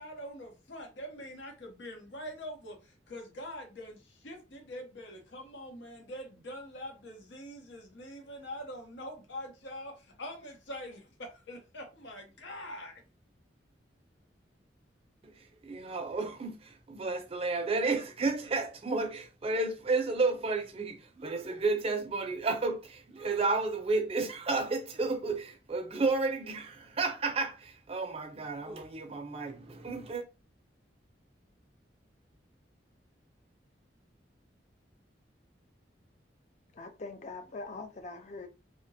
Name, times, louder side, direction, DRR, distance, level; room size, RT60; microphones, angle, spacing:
voice 1, 0.0-13.0, equal, 85° left, 0.8 m, -44 dB
voice 2, 15.6-30.2, right 3 dB, 35° right, 0.4 m, -32 dB
voice 3, 36.8-38.5, left 3 dB, 40° left, 0.4 m, -42 dB
2.7 x 2.1 x 2.6 m
head